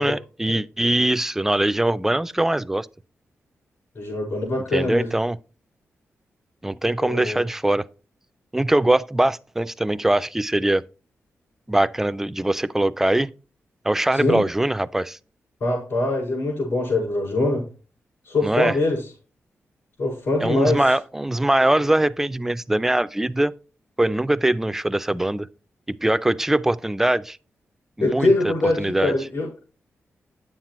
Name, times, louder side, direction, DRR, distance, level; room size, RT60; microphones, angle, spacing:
voice 1, 0.0-2.9 4.7-5.4 6.6-7.8 8.5-10.8 11.7-13.3 13.8-15.2 18.4-18.8 20.4-23.5 24.0-25.5 26.0-27.4 28.0-29.1, right 1 dB, 10° right, 0.3 m, -22 dB
voice 2, 3.9-5.1 7.0-7.4 14.1-14.4 15.6-17.6 18.2-19.1 20.0-20.9 28.0-29.7, left 2 dB, 60° left, 5.1 m, -23 dB
9.4 x 7.4 x 3.0 m
wide cardioid pair, 140°, 5 cm